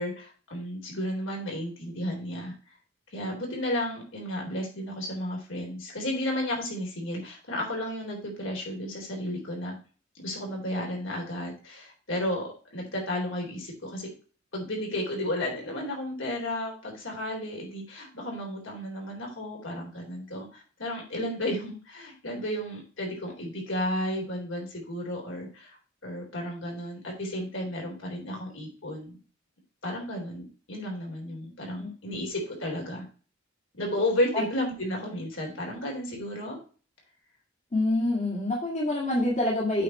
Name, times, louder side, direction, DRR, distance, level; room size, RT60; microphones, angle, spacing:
voice 1, 0.0-2.5 3.1-9.8 10.2-14.1 14.5-29.2 29.8-33.1 33.8-36.6, left 1 dB, 70° left, 0 dB, 3.7 m, -33 dB
voice 2, 37.7-39.8, left 1 dB, 35° left, -4 dB, 1.9 m, -26 dB
8.4 x 5.0 x 4.2 m, 0.37 s
head